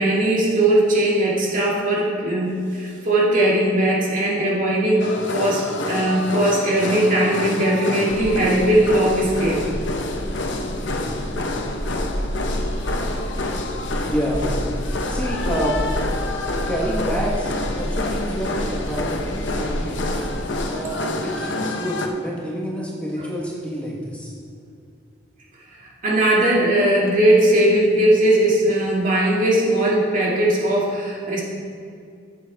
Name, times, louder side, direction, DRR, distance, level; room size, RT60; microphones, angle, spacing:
voice 1, 0.0-9.6 23.2-23.3 25.8-31.4, right 1 dB, 45° right, -4 dB, 2.3 m, -19 dB
sound 1, 5.0-22.1, left 2 dB, 70° left, 0.9 m, -28 dB
sound 2, 8.1-20.6, equal, 40° left, 2.5 m, -30 dB
voice 2, 14.1-14.4 15.0-15.8 16.7-20.0 20.7-24.3, right 1 dB, 5° left, -4 dB, 1.2 m, -28 dB
14.0 x 7.8 x 3.5 m, 2.3 s
head